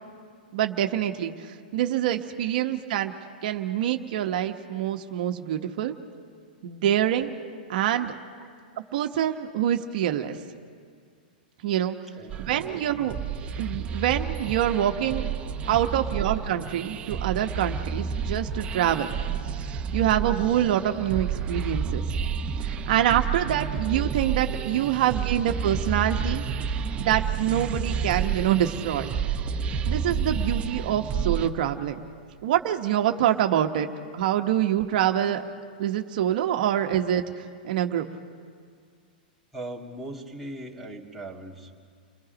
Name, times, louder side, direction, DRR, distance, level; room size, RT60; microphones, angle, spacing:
voice 1, 0.5-3.1 3.4-5.9 6.6-7.3 7.7-8.1 8.9-10.4 11.6-12.0 12.4-13.1 13.6-15.3 15.7-19.2 19.9-22.0 22.6-26.4 27.0-29.1 29.9-32.1 32.4-35.4 35.8-38.1, right 11 dB, 65° right, 5 dB, 1.1 m, -25 dB
voice 2, 12.2-13.0 16.2-16.3 29.3-29.5 39.5-41.7, right 1 dB, ahead, 2 dB, 2.1 m, -41 dB
sound 1, 12.3-31.5, right 6 dB, 25° right, 1.0 m, -30 dB
29.5 x 20.5 x 5.2 m, 2.1 s
hypercardioid pair, 130°, 5 cm